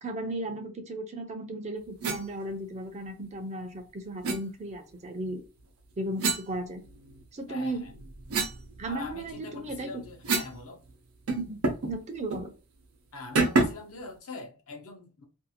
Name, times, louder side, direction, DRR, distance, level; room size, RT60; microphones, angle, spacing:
voice 1, 0.0-5.4 6.0-6.8 7.3-7.9 8.8-9.9 11.3-11.6 11.8-12.5, right 1 dB, 30° right, 0.5 m, -35 dB
sound 1, 2.0-2.2 4.2-4.4 6.2-7.2 7.7-10.6 10.9-11.0 11.3-11.9 12.3-12.5 13.4-13.9, right 3 dB, 90° right, 0.7 m, -29 dB
voice 2, 7.5-7.9 8.8-10.8 13.1-15.2, left 3 dB, 70° left, 0.8 m, -43 dB
2.6 x 2.4 x 2.7 m
head